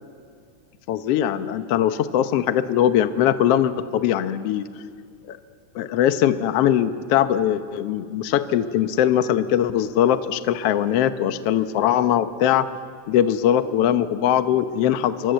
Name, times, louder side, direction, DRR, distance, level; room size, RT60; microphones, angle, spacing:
voice 1, 0.9-4.6 5.3-5.4 5.7-12.7 13.1-15.3, left 10 dB, 70° left, 10 dB, 1.5 m, -21 dB
30.0 x 23.5 x 7.9 m, 2.1 s
omnidirectional pair, 3.7 m